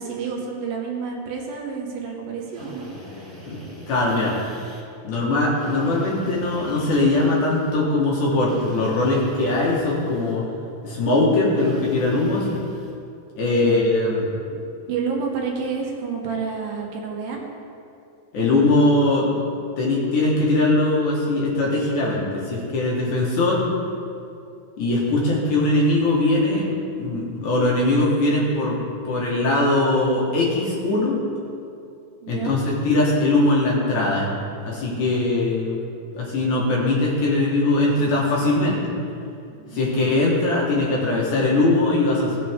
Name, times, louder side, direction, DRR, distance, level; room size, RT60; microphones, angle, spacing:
voice 1, 0.0-3.3 13.4-13.8 14.9-17.4 32.2-32.6 39.5-40.0, right 5 dB, 75° right, 0 dB, 2.5 m, -30 dB
Drill, 2.5-4.8 5.5-7.8 8.5-10.4 11.6-12.9, equal, 15° right, 1.8 m, -41 dB
voice 2, 3.9-4.4 5.0-10.4 10.8-12.5 13.4-14.6 18.3-19.3 19.8-23.6 24.8-26.7 27.0-28.8 29.0-31.2 32.3-34.3 34.6-35.8 36.1-38.9 39.7-42.4, left 2 dB, 60° left, -4 dB, 2.6 m, -21 dB
16.5 x 7.0 x 3.6 m, 2.6 s
omnidirectional pair, 4.4 m